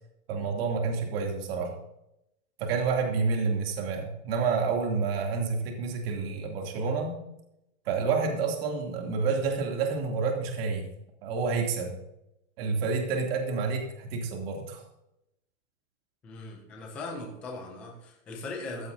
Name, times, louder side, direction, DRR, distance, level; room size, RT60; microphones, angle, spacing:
voice 1, 0.3-1.7 2.6-7.2 7.8-10.9 11.2-12.0 12.6-14.8, right 4 dB, 45° right, 1 dB, 2.9 m, -29 dB
voice 2, 16.2-18.9, left 2 dB, 5° left, 0 dB, 0.4 m, -39 dB
15.0 x 12.0 x 2.8 m, 0.85 s
hypercardioid pair, 160°, 40 cm